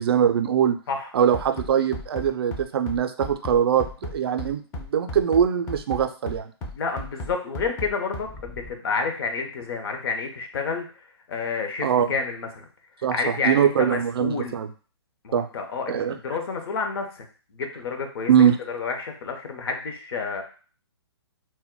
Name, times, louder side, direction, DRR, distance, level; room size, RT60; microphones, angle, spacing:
voice 1, 0.0-0.8 1.1-3.8 4.1-6.5 11.8-12.1 13.0-13.1 13.4-14.7 15.3-15.5 15.9-16.2 18.3-18.6, right 8 dB, 60° right, 7 dB, 0.4 m, -22 dB
Bass drum, 1.3-8.7, left 1 dB, 15° left, 0.4 m, -35 dB
voice 2, 6.7-12.6 13.1-14.6 15.2-17.3 17.5-20.4, left 4 dB, 55° left, 4 dB, 0.7 m, -30 dB
2.1 x 2.1 x 3.7 m, 0.38 s
hypercardioid pair, 135°, 15 cm